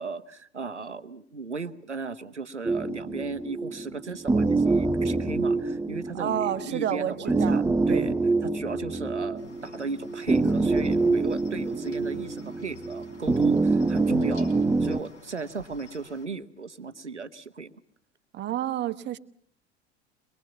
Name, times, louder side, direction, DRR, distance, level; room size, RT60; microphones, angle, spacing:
voice 1, 0.0-8.1 8.4-17.7, right 4 dB, 85° right, 12 dB, 1.0 m, -36 dB
sound 1, 2.6-15.0, right 3 dB, 10° right, 0.9 m, -26 dB
voice 2, 6.1-7.6 7.9-8.1 18.3-19.2, right 11 dB, 30° right, 9 dB, 1.3 m, -29 dB
Cricket, 9.4-16.3, left 2 dB, 85° left, 3.7 m, -50 dB
23.5 x 22.0 x 7.2 m, 0.63 s
figure-of-eight pair, 75°, 34 cm